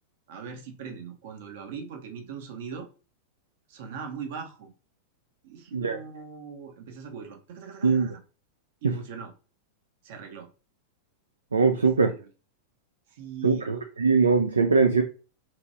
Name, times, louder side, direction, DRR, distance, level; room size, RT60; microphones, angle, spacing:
voice 1, 0.3-2.9 3.7-4.7 5.4-8.2 8.8-9.3 10.0-10.5 11.7-11.8 13.2-13.7, right 6 dB, 55° right, 4 dB, 0.7 m, -40 dB
voice 2, 11.5-12.1 13.4-15.0, right 4 dB, 75° right, 5 dB, 0.3 m, -21 dB
2.9 x 2.9 x 2.6 m, 0.36 s
figure-of-eight pair, 90°, 0 cm